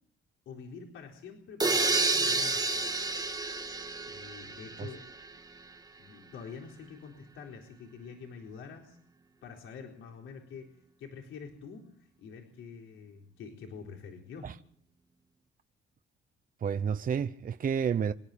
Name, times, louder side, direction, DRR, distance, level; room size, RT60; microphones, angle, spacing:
voice 1, 0.5-2.8 4.1-5.1 6.0-9.0 9.4-11.9 12.2-14.5, left 5 dB, 80° left, 4.1 m, -46 dB
sound 1, 1.6-5.3, right 3 dB, 20° right, 1.7 m, -30 dB
voice 2, 16.6-18.1, right 7 dB, 45° right, 0.8 m, -30 dB
26.0 x 12.0 x 8.7 m
cardioid pair, 90°, 20 cm